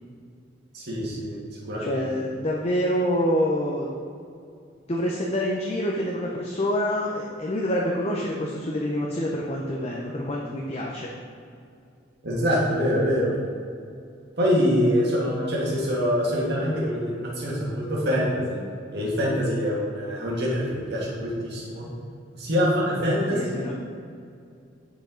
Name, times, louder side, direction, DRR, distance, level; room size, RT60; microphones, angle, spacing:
voice 1, 0.7-1.4 1.6-2.0 12.2-13.3 14.4-18.6 18.9-21.9 22.3-23.6, equal, 60° right, -5 dB, 1.8 m, -25 dB
voice 2, 1.8-3.9 4.9-11.1 23.3-23.7, equal, 35° left, -2 dB, 0.7 m, -26 dB
9.0 x 5.2 x 3.8 m, 2.4 s
head